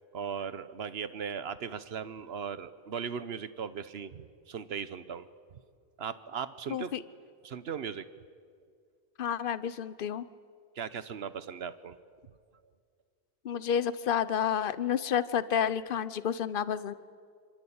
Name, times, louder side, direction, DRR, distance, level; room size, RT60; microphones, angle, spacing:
voice 1, 0.1-5.3 6.0-6.9 7.4-8.1 10.8-12.0, right 7 dB, 80° right, 14 dB, 1.2 m, -38 dB
voice 2, 6.7-7.0 9.2-10.3 13.4-16.9, left 8 dB, 60° left, 15 dB, 1.0 m, -30 dB
25.5 x 25.5 x 8.8 m, 2.2 s
omnidirectional pair, 1.0 m